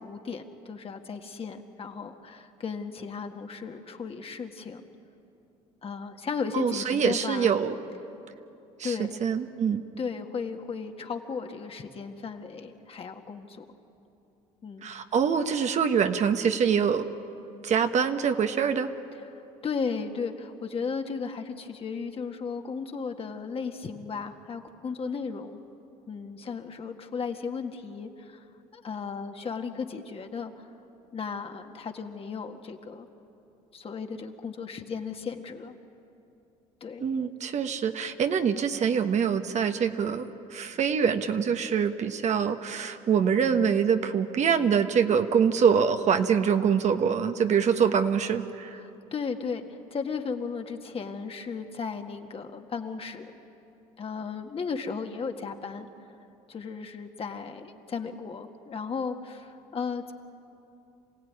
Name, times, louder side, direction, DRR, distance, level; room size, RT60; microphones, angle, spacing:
voice 1, 0.0-4.8 5.8-7.5 8.8-9.2 10.0-13.6 14.6-14.9 19.3-25.6 26.1-28.4 28.7-30.5 31.1-33.1 33.7-35.7 36.8-37.0 48.8-49.6 49.9-53.4 54.0-55.9 56.5-60.1, left 5 dB, 40° left, 4 dB, 1.9 m, -35 dB
voice 2, 6.5-7.7 8.8-9.8 14.8-17.1 17.6-18.9 37.0-48.8, right 7 dB, 50° right, 7 dB, 1.3 m, -25 dB
27.0 x 16.5 x 9.7 m, 2.8 s
supercardioid pair, 80°, 16 cm